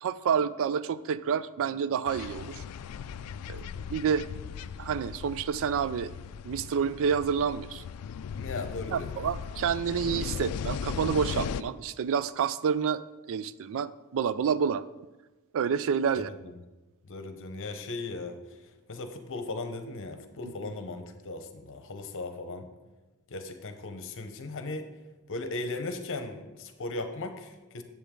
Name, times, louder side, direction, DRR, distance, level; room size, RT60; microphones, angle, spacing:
voice 1, 0.0-2.5 3.5-3.6 3.9-4.3 4.8-6.1 6.4-7.8 8.9-13.0 13.3-14.8 15.5-16.3 20.4-20.7, right 7 dB, 60° right, 16 dB, 0.3 m, -28 dB
sound 1, 2.1-11.6, left 7 dB, 85° left, 0.4 m, -37 dB
voice 2, 8.4-9.2 17.1-18.4 18.9-22.7 23.3-24.9 25.3-27.8, left 2 dB, 60° left, 7 dB, 0.9 m, -37 dB
10.0 x 7.5 x 3.8 m, 1.1 s
head